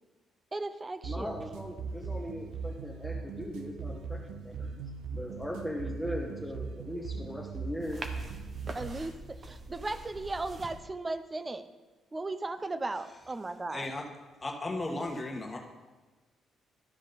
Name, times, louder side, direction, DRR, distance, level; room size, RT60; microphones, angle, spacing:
voice 1, 0.5-1.4 8.7-11.7 12.1-13.9, right 2 dB, 25° right, 11 dB, 0.6 m, -36 dB
voice 2, 1.0-4.8 5.1-8.0, left 1 dB, 5° left, -3 dB, 1.1 m, -39 dB
sound 1, 1.0-9.1, right 5 dB, 90° right, 0.5 m, -39 dB
sound 2, 7.8-10.8, right 2 dB, 45° right, 0.9 m, -44 dB
voice 3, 13.7-14.0 14.4-15.6, left 2 dB, 20° left, 1 dB, 1.4 m, -35 dB
12.5 x 5.1 x 4.0 m, 1.3 s
cardioid pair, 90°, 0 cm